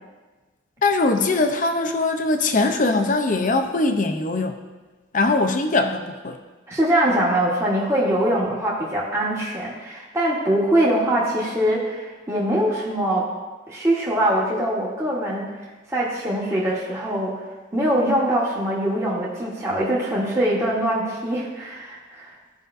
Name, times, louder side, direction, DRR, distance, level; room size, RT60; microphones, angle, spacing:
voice 1, 0.8-4.6 5.1-6.4, left 3 dB, 40° left, 6 dB, 0.6 m, -21 dB
voice 2, 6.7-13.3 13.7-15.5 15.9-17.4 17.7-22.3, right 1 dB, 15° right, -6 dB, 1.1 m, -23 dB
13.5 x 5.2 x 2.6 m, 1.3 s
head